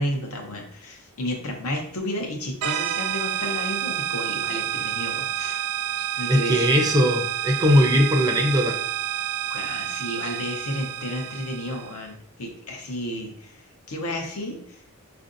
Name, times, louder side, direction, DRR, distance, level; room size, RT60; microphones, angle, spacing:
voice 1, 0.0-5.6 6.2-7.1 9.5-14.8, left 1 dB, 80° left, 2 dB, 0.8 m, -32 dB
sound 1, 2.6-12.0, right 12 dB, 80° right, 0.4 m, -29 dB
voice 2, 6.3-8.8, equal, 20° right, 3 dB, 0.4 m, -19 dB
4.4 x 2.6 x 2.5 m, 0.64 s
head